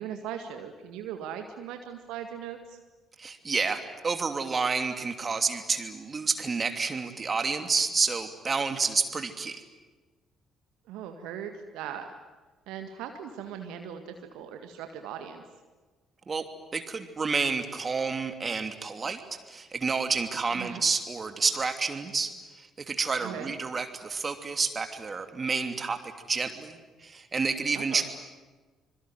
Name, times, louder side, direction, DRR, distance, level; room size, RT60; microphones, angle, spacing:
voice 1, 0.0-2.8 10.9-12.1 12.7-15.4 20.5-20.8 23.2-23.6 27.7-28.0, right 9 dB, 65° right, 6 dB, 1.8 m, -39 dB
voice 2, 3.2-9.6 16.3-16.4 16.7-19.2 19.5-26.0 26.3-28.0, right 4 dB, 30° right, 7 dB, 2.9 m, -29 dB
26.0 x 23.5 x 9.4 m, 1.3 s
figure-of-eight pair, 45°, 0 cm